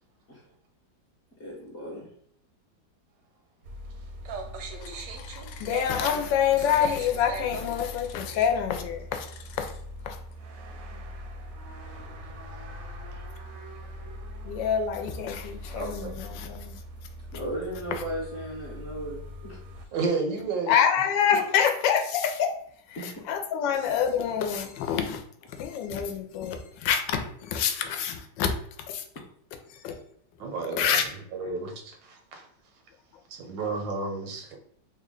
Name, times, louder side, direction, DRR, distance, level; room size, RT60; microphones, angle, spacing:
voice 1, 1.4-2.1 17.3-19.6 21.3-21.5 22.9-23.2, right 1 dB, 50° left, 0.9 m, -36 dB
sound 1, 3.6-19.8, right 1 dB, 70° right, 0.8 m, -40 dB
voice 2, 4.8-9.7 10.0-10.2 14.5-16.8 20.7-22.6 23.0-25.2 25.6-28.5 28.9-29.0 29.8-29.9 30.8-31.0, left 8 dB, 90° left, 1.3 m, -27 dB
voice 3, 15.7-16.2 19.9-20.7 30.4-31.1 31.3-32.5 33.3-34.6, right 4 dB, 90° right, 1.4 m, -32 dB
3.3 x 2.2 x 3.7 m
omnidirectional pair, 1.9 m